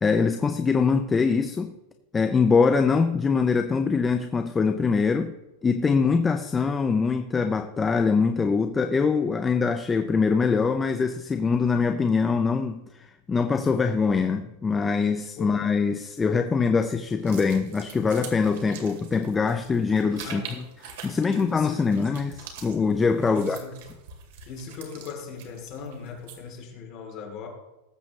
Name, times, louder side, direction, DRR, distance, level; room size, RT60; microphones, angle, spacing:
voice 1, 0.0-1.7 2.1-5.3 5.6-12.8 13.3-20.4 20.9-23.6, left 5 dB, 10° left, 7 dB, 0.4 m, -23 dB
sound 1, 17.2-26.6, right 6 dB, 60° right, 2.3 m, -45 dB
voice 2, 20.2-20.6 21.3-22.0 23.3-23.8 24.5-27.5, left 5 dB, 30° left, 0 dB, 2.7 m, -39 dB
19.0 x 7.6 x 3.1 m, 1.0 s
supercardioid pair, 170°, 0 cm